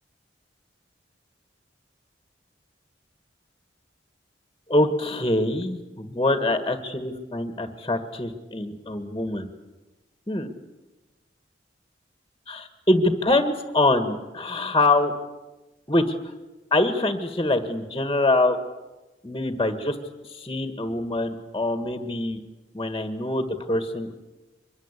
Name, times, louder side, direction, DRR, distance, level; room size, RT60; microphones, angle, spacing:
voice 1, 4.7-9.4 10.3-10.5 12.5-15.1 15.9-16.1 16.7-18.6 19.2-20.0 20.3-22.4 22.7-24.1, left 2 dB, 20° left, 8 dB, 1.7 m, -24 dB
24.5 x 22.0 x 8.3 m, 1.1 s
head